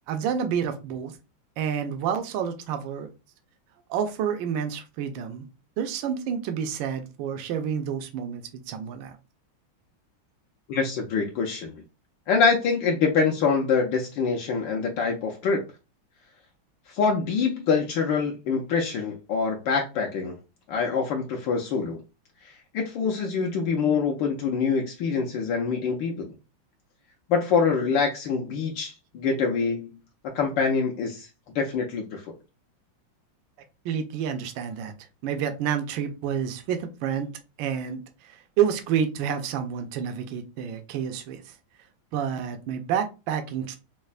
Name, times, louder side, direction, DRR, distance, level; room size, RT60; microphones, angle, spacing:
voice 1, 0.1-1.1 1.6-3.1 3.9-5.5 5.8-9.2 33.8-34.9 35.2-37.3 37.6-41.5 42.1-43.8, right 8 dB, 75° right, 7 dB, 1.3 m, -29 dB
voice 2, 10.7-11.8 12.3-15.6 16.9-20.4 20.7-22.0 22.4-26.3 27.3-29.9 30.2-31.3 31.5-32.3, left 5 dB, 75° left, 1 dB, 1.3 m, -25 dB
5.3 x 2.1 x 2.4 m, 0.29 s
omnidirectional pair, 2.3 m